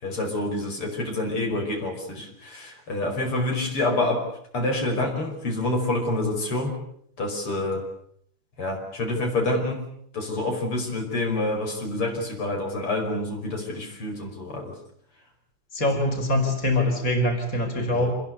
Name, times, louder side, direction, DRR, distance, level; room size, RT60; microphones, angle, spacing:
voice 1, 0.0-4.3 4.5-6.8 7.2-7.8 8.6-9.8 10.1-14.7 17.9-18.1, left 2 dB, 80° left, 2 dB, 6.2 m, -27 dB
voice 2, 15.7-18.1, left 1 dB, 35° left, 4 dB, 5.1 m, -23 dB
27.0 x 21.0 x 8.4 m, 0.67 s
omnidirectional pair, 2.4 m